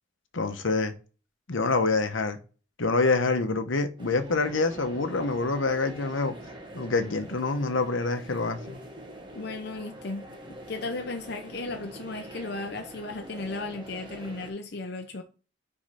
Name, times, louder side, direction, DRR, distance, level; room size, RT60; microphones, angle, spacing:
voice 1, 0.3-0.9 1.5-2.4 2.8-6.3 6.7-8.8, left 3 dB, 75° left, 1.0 m, -26 dB
sound 1, 4.0-14.5, right 1 dB, 25° right, 1.3 m, -44 dB
voice 2, 9.3-10.3 10.7-15.2, left 3 dB, 55° left, 0.7 m, -35 dB
5.2 x 4.7 x 5.7 m
head